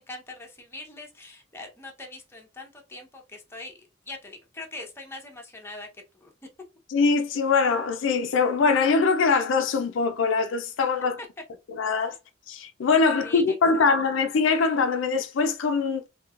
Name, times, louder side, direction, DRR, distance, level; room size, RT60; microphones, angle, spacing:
voice 1, 0.0-3.8 4.0-6.3 11.2-11.3 13.2-13.9, left 2 dB, 15° left, 0.8 m, -42 dB
voice 2, 6.9-11.2 11.7-12.2 12.5-16.0, left 4 dB, 75° left, 0.4 m, -23 dB
3.0 x 2.8 x 2.4 m
head